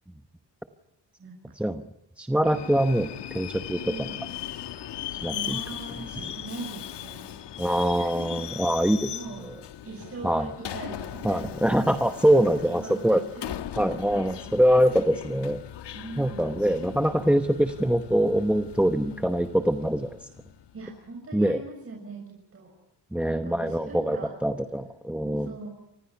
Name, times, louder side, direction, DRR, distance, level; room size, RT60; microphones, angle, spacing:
voice 1, 2.2-3.1 3.3-4.1 5.1-5.6 7.6-9.1 10.2-10.5 11.2-13.2 13.8-15.6 16.2-20.2 21.3-21.6 23.1-25.5, equal, 5° right, 7 dB, 1.0 m, -24 dB
Subway metro underground, 2.4-20.9, left 11 dB, 90° left, 1.3 m, -39 dB
voice 2, 3.8-4.3 5.3-7.4 8.0-8.4 9.1-9.5 9.8-13.8 14.1-14.4 15.9-16.6 19.1-19.3 20.7-22.2 22.5-22.7 23.3-24.3 25.3-25.7, right 3 dB, 35° right, -2 dB, 6.9 m, -41 dB
29.5 x 25.5 x 5.9 m, 0.83 s
wide cardioid pair, 150°, 41 cm